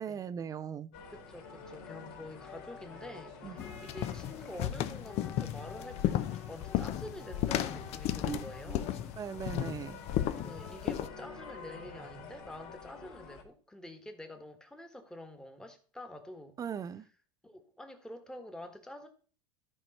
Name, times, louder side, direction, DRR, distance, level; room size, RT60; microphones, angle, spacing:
voice 1, 0.0-0.9 3.4-3.5 8.3-8.8 9.2-10.0 16.6-17.0, right 7 dB, 25° right, 0.4 m, -39 dB
sound 1, 0.9-13.4, left 4 dB, 65° left, 2.6 m, -48 dB
voice 2, 1.1-9.1 10.4-16.5 17.4-19.1, left 1 dB, 5° left, 1.4 m, -47 dB
sound 2, 3.6-11.1, left 12 dB, 50° left, 0.7 m, -34 dB
13.5 x 4.6 x 4.2 m
supercardioid pair, 110°, 14 cm